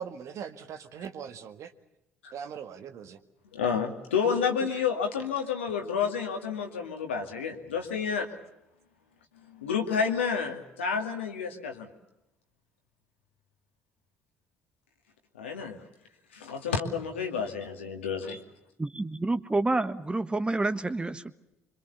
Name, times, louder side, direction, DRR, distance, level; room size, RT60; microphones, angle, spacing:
voice 1, 0.0-1.7 2.3-3.2 4.6-4.8, right 7 dB, 55° right, 1.9 m, -40 dB
voice 2, 3.5-8.3 9.5-11.9 15.4-15.8 16.3-18.4, left 6 dB, 80° left, 2.4 m, -30 dB
voice 3, 18.8-21.3, right 2 dB, 15° right, 1.4 m, -28 dB
25.5 x 25.0 x 7.0 m
figure-of-eight pair, 50°, 6 cm